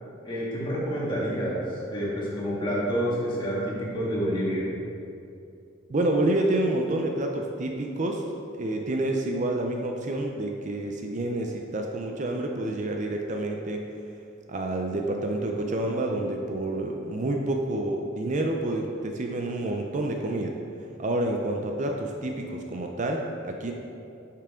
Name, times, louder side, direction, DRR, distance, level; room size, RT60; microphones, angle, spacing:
voice 1, 0.2-4.7, equal, 25° left, -7 dB, 1.8 m, -28 dB
voice 2, 5.9-8.2 8.5-13.8 14.5-20.6 21.0-23.7, right 1 dB, 40° right, 2 dB, 0.5 m, -28 dB
8.6 x 5.7 x 3.6 m, 2.6 s
head